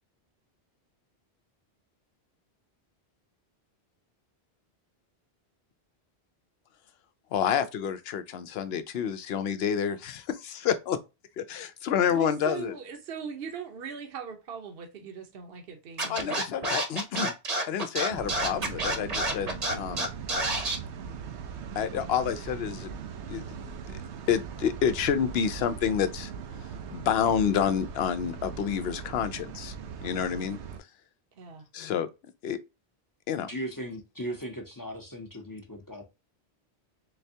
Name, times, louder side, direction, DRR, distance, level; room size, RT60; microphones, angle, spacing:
voice 1, 7.3-11.0 11.4-12.7 16.1-17.3 17.7-20.1 21.8-22.9 23.3-23.4 23.9-24.0 24.3-26.3 26.9-29.7 30.0-30.6 31.7-32.1 32.4-32.6 33.3-33.5, left 8 dB, 70° left, 0.8 m, -28 dB
voice 2, 12.1-16.4 31.3-31.6, right 6 dB, 60° right, 1.0 m, -40 dB
Scratching (performance technique), 16.0-20.8, right 1 dB, 40° right, 0.9 m, -28 dB
sound 1, 18.1-30.8, right 7 dB, 85° right, 0.9 m, -40 dB
voice 3, 33.5-36.0, equal, 20° left, 0.6 m, -37 dB
4.0 x 3.3 x 2.7 m
omnidirectional pair, 1.1 m